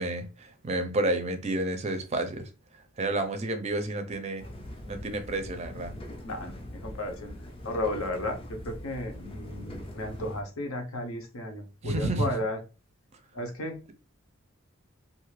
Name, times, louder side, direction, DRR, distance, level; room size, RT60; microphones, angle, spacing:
voice 1, 0.0-2.5 3.0-4.4 4.9-6.0 11.8-12.3, right 2 dB, 30° right, 0.4 m, -30 dB
sound 1, 4.4-10.4, left 1 dB, 25° left, 0.4 m, -42 dB
voice 2, 6.2-12.6 13.3-13.8, left 1 dB, 75° left, 0.7 m, -34 dB
2.5 x 2.4 x 3.1 m
head